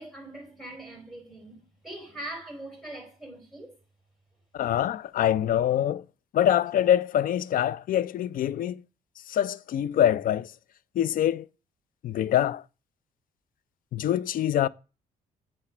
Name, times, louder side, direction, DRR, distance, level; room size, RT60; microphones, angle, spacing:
voice 1, 0.0-1.6 1.8-3.8, right 1 dB, ahead, 4.5 m, -41 dB
voice 2, 4.5-6.0 6.3-8.8 9.3-10.5 11.0-11.4 12.0-12.6 13.9-14.7, left 11 dB, 60° left, 0.4 m, -24 dB
8.5 x 3.4 x 6.0 m
supercardioid pair, 70°, 16 cm